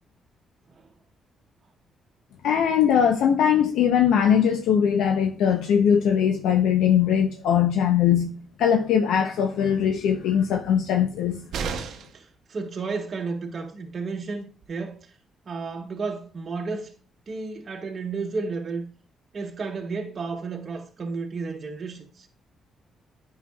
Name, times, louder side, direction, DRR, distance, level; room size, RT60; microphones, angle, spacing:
voice 1, 2.4-8.3 8.6-11.4, left 8 dB, 85° left, 0.5 m, -21 dB
sound 1, 11.5-12.3 14.2-14.3 14.6-14.7, right 6 dB, 75° right, 0.7 m, -32 dB
voice 2, 12.1-15.0 15.5-16.9 17.3-18.8 19.3-22.3, right 4 dB, 45° right, 0.8 m, -32 dB
9.2 x 5.6 x 2.3 m
cardioid pair, 90°, 0 cm